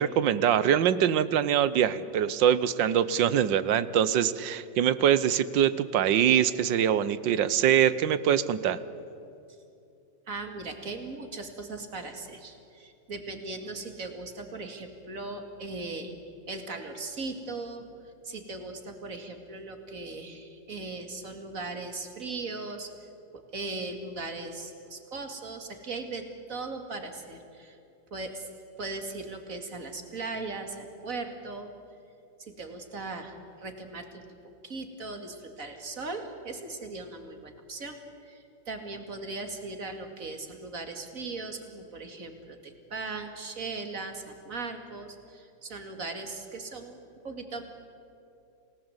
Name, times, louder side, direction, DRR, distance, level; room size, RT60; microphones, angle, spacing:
voice 1, 0.0-8.8, right 9 dB, 75° right, 16 dB, 1.5 m, -24 dB
voice 2, 10.3-16.1 16.5-22.9 23.5-26.2 26.5-27.8 28.1-28.5 28.8-31.7 32.4-34.2 34.6-47.0 47.2-47.6, right 3 dB, 45° right, 5 dB, 2.7 m, -38 dB
28.5 x 18.0 x 8.0 m, 2.7 s
omnidirectional pair, 2.0 m